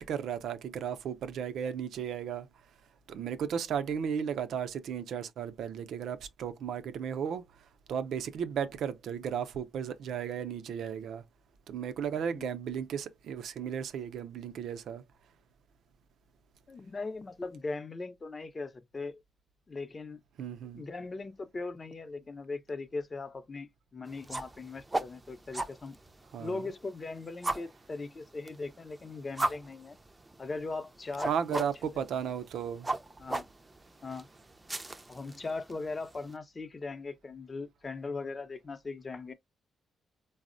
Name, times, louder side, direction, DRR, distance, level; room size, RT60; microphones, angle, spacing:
voice 1, 0.0-2.5 3.1-7.5 7.9-11.2 11.7-15.0 20.4-20.8 26.3-26.6 31.2-32.9, right 8 dB, 75° right, 0.5 m, -35 dB
voice 2, 16.7-19.2 19.7-20.2 20.7-26.0 26.4-30.0 30.4-31.7 33.2-33.5 34.0-34.3 35.1-39.3, left 3 dB, 35° left, 0.6 m, -39 dB
sound 1, 24.0-36.3, right 2 dB, 20° right, 0.4 m, -39 dB
4.0 x 2.0 x 2.5 m
cardioid pair, 85°, 0 cm